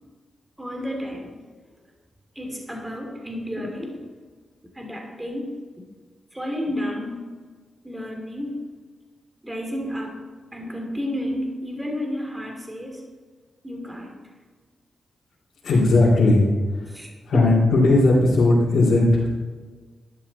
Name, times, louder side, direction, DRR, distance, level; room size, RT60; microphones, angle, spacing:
voice 1, 0.6-1.3 2.4-3.9 4.7-5.6 6.3-7.2 7.8-8.7 9.4-10.2 10.5-13.0 13.6-14.2 16.9-17.1, equal, 10° right, 1 dB, 2.9 m, -31 dB
voice 2, 15.6-16.4 17.3-19.3, left 2 dB, 75° left, -8 dB, 3.5 m, -17 dB
12.0 x 11.0 x 4.3 m, 1.4 s
cardioid pair, 90°, 0 cm